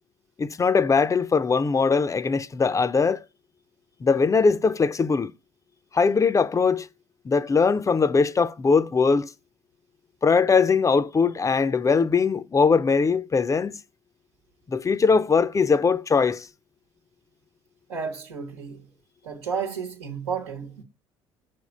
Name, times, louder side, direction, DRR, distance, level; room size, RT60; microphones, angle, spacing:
voice 1, 0.4-3.2 4.0-5.3 5.9-6.9 7.2-9.3 10.2-13.8 14.7-16.5, left 5 dB, 25° left, 0.5 m, -21 dB
voice 2, 17.9-18.9 19.2-20.8, right 6 dB, 85° right, 1.1 m, -32 dB
5.9 x 3.5 x 5.4 m
hypercardioid pair, 60°, 14 cm